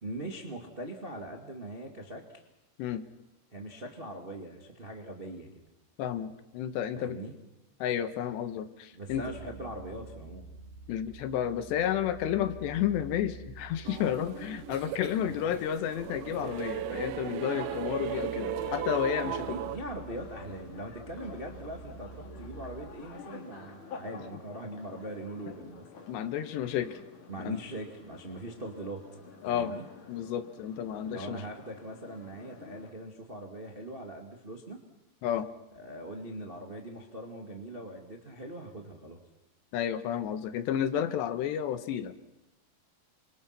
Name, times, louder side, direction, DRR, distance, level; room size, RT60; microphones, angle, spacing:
voice 1, 0.0-2.2 3.5-5.5 6.9-7.3 8.9-10.5 15.2-15.5 19.2-25.9 27.3-29.0 29.5-29.9 31.0-34.8 35.7-39.2, right 1 dB, 30° right, 2 dB, 0.9 m, -41 dB
voice 2, 6.0-7.2 7.8-9.2 10.9-19.6 25.5-25.6 26.1-27.0 27.4-27.6 29.4-29.7 30.1-31.4 35.2-35.5 39.7-42.3, left 10 dB, 75° left, 11 dB, 3.2 m, -31 dB
sound 1, 9.1-23.0, right 3 dB, 60° right, 4.6 m, -49 dB
sound 2, 13.9-19.8, right 11 dB, 80° right, 3.4 m, -36 dB
sound 3, 15.1-32.9, left 4 dB, 45° left, 4.2 m, -49 dB
28.5 x 25.5 x 6.0 m, 0.91 s
omnidirectional pair, 5.2 m